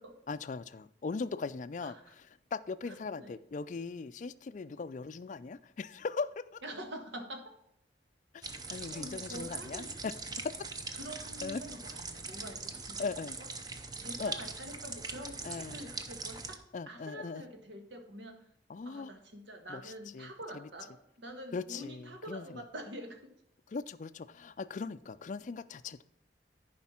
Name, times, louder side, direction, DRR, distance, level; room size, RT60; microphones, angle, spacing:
voice 1, 0.3-6.6 8.3-10.1 11.4-11.6 13.0-13.4 14.2-14.3 15.4-15.9 16.7-17.4 18.7-19.1 19.7-20.7 21.5-22.6 23.7-26.0, left 4 dB, 45° left, 15 dB, 0.4 m, -39 dB
voice 2, 2.9-3.4 6.6-7.5 8.7-9.9 11.0-13.0 13.4-13.5 13.7-16.6 16.9-18.4 18.8-23.3, equal, 80° right, 4 dB, 1.6 m, -46 dB
sound 1, 8.4-16.6, right 4 dB, 20° right, 0.6 m, -42 dB
10.5 x 5.1 x 4.3 m, 0.77 s
head